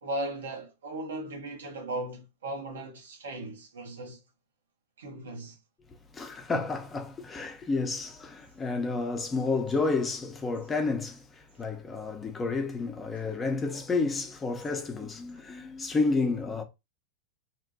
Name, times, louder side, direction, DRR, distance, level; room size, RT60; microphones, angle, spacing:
voice 1, 0.0-4.2 5.0-5.6 13.2-13.3, right 1 dB, 65° right, 0.8 m, -37 dB
voice 2, 6.1-16.6, left 3 dB, 15° left, 0.6 m, -30 dB
2.8 x 2.1 x 2.8 m
figure-of-eight pair, 90°, 0 cm